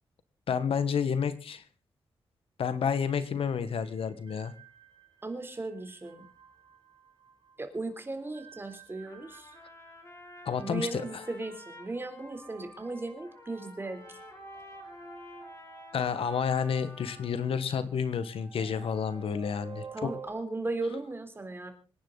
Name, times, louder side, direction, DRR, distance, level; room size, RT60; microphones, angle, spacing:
voice 1, 0.5-1.6 2.6-4.5 10.4-11.2 15.9-20.1, left 7 dB, 80° left, 13 dB, 1.5 m, -30 dB
sound 1, 2.9-20.3, right 5 dB, 65° right, 5.2 m, -52 dB
voice 2, 5.2-6.2 7.6-9.6 10.6-14.2 19.9-21.7, right 2 dB, 25° right, 7 dB, 3.6 m, -37 dB
Trumpet, 9.1-17.5, left 2 dB, 30° left, 5.0 m, -50 dB
26.0 x 10.5 x 4.1 m, 0.35 s
wide cardioid pair, 110°, 10 cm